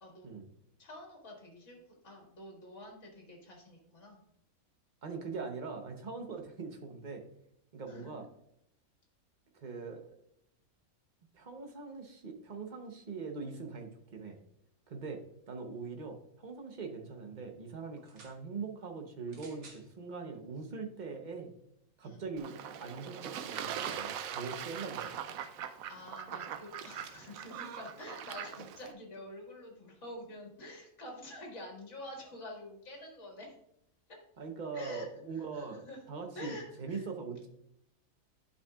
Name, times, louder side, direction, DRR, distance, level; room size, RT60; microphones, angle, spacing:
voice 1, 0.0-0.3 0.8-1.8 2.0-4.2 7.9-8.2 22.0-22.2 25.7-33.6 34.1-34.2 34.7-35.1 35.3-36.0 36.4-37.1, left 1 dB, 55° left, -1 dB, 2.2 m, -47 dB
voice 2, 5.0-7.2 7.7-8.3 9.6-10.1 11.3-14.4 14.9-21.5 22.0-22.5 22.8-25.1 34.4-35.8 36.1-37.5, right 4 dB, 35° right, 3 dB, 1.0 m, -42 dB
sound 1, 18.0-18.4 19.3-19.9 20.8-20.9, right 3 dB, 55° right, 1.4 m, -55 dB
Fowl / Bird / Water, 22.4-28.9, right 9 dB, 75° right, 1.0 m, -41 dB
11.0 x 5.4 x 2.4 m, 0.75 s
omnidirectional pair, 1.5 m